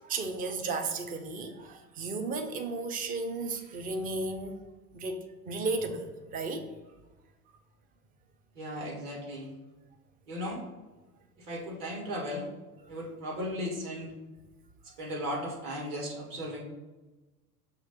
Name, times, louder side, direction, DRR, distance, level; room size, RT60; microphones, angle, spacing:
voice 1, 0.0-4.6 4.9-6.7, right 3 dB, 20° right, 7 dB, 0.5 m, -34 dB
voice 2, 8.5-9.5 10.3-10.7 11.4-12.5 12.9-14.1 14.8-16.6, equal, 40° right, -2 dB, 2.1 m, -36 dB
6.3 x 3.0 x 5.5 m, 1.2 s
figure-of-eight pair, 85°, 49 cm